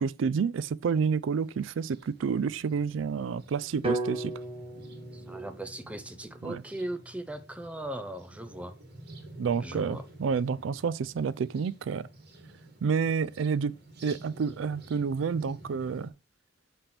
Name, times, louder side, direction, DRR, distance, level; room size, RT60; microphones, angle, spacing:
voice 1, 0.0-4.3 6.4-6.6 9.4-12.1 12.8-13.8 14.0-16.1, right 6 dB, 85° right, 0.4 m, -29 dB
sound 1, 1.4-16.1, right 1 dB, 60° right, 1.6 m, -50 dB
sound 2, 3.8-7.9, right 2 dB, 30° right, 1.1 m, -37 dB
voice 2, 5.1-8.7 9.6-10.0, right 1 dB, 5° right, 0.6 m, -38 dB
5.9 x 3.4 x 5.8 m
head